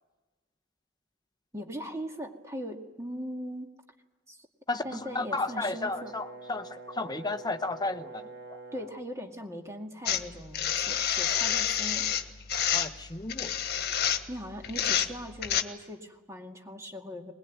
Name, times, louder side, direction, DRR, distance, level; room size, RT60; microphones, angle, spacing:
voice 1, 1.5-3.7 4.3-4.5 4.8-6.1 8.7-12.1 14.3-17.3, equal, 15° right, 3 dB, 2.1 m, -40 dB
Brass instrument, 4.8-9.1, right 3 dB, 60° right, 1.7 m, -46 dB
voice 2, 5.1-8.6 12.7-13.5, left 3 dB, 20° left, 9 dB, 1.0 m, -33 dB
sound 1, 10.1-15.6, left 9 dB, 55° left, 1.5 m, -28 dB
21.5 x 21.0 x 9.3 m, 1.2 s
head